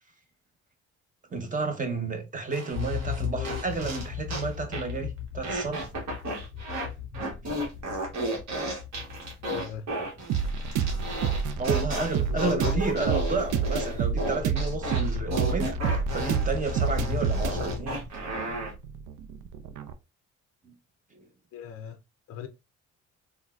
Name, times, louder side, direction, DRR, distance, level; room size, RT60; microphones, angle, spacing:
voice 1, 1.3-5.8 11.6-15.8 16.1-18.0, right 4 dB, 25° right, 0.8 m, -31 dB
sound 1, 2.5-4.5 4.7-5.0 5.4-6.9 7.1-18.7, right 1 dB, 65° right, 1.1 m, -34 dB
sound 2, 2.7-18.4, left 9 dB, ahead, 1.5 m, -38 dB
voice 2, 3.3-3.6 9.4-9.9 12.3-12.8 21.5-22.0 22.3-22.5, left 8 dB, 50° left, 0.5 m, -36 dB
sound 3, 10.3-19.9, right 6 dB, 80° right, 0.5 m, -29 dB
3.8 x 2.2 x 2.3 m
cardioid pair, 90°, 30 cm